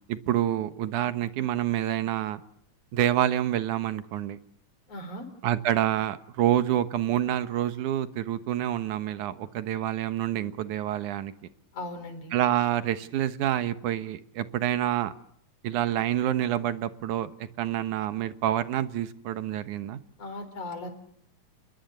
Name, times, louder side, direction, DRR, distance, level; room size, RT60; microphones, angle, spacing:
voice 1, 0.0-2.4 2.9-4.4 5.4-11.3 12.3-15.2 15.6-20.0, right 11 dB, 70° right, 11 dB, 2.6 m, -27 dB
voice 2, 4.9-5.3 11.7-12.3 20.2-20.9, left 2 dB, 50° left, 9 dB, 4.9 m, -37 dB
29.5 x 21.5 x 6.8 m, 0.68 s
omnidirectional pair, 3.7 m